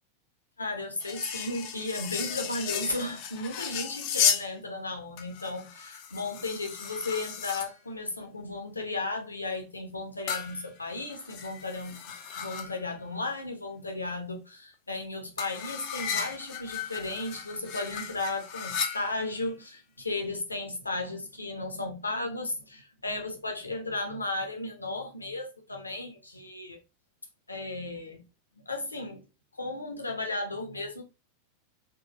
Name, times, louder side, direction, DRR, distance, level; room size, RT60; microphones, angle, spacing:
voice 1, 0.6-26.8 27.5-28.2 28.6-29.2 29.6-31.0, left 2 dB, 80° left, 0.9 m, -35 dB
sound 1, 1.0-4.5 5.2-7.8 10.3-12.9 15.4-19.4, left 8 dB, 45° left, 0.7 m, -34 dB
3.8 x 3.0 x 3.0 m
figure-of-eight pair, 90°, 0 cm